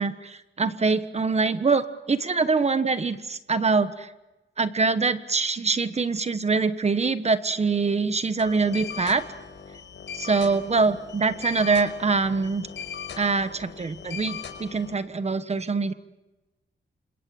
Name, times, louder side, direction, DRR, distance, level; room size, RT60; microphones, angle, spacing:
voice 1, 0.0-4.1 4.6-9.2 10.1-12.7 13.2-15.9, right 4 dB, 30° right, 11 dB, 1.3 m, -24 dB
sound 1, 8.4-14.9, left 7 dB, 65° left, 5.4 m, -39 dB
28.0 x 28.0 x 7.7 m, 1.1 s
wide cardioid pair, 150°, 21 cm